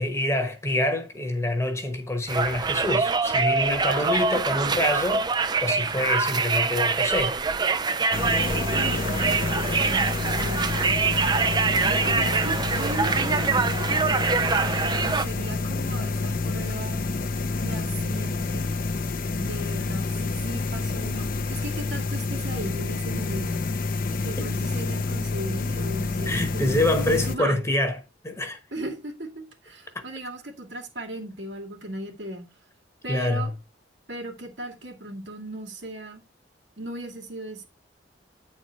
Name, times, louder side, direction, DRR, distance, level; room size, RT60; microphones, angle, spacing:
voice 1, 0.0-7.4 24.4-24.5 26.3-28.0 28.2-28.6 29.9-30.0 33.1-33.5, left 1 dB, 15° left, 1.1 m, -26 dB
Conversation, 2.3-15.2, right 4 dB, 20° right, 0.4 m, -24 dB
sound 1, 8.1-27.4, left 3 dB, 50° left, 0.7 m, -28 dB
voice 2, 8.7-10.8 11.9-13.8 15.0-17.0 17.6-18.7 19.4-23.6 24.1-27.6 28.7-29.3 29.6-32.5 33.0-33.5 34.1-36.2 36.8-37.7, right 1 dB, 75° right, 2.4 m, -37 dB
9.4 x 4.3 x 4.5 m
head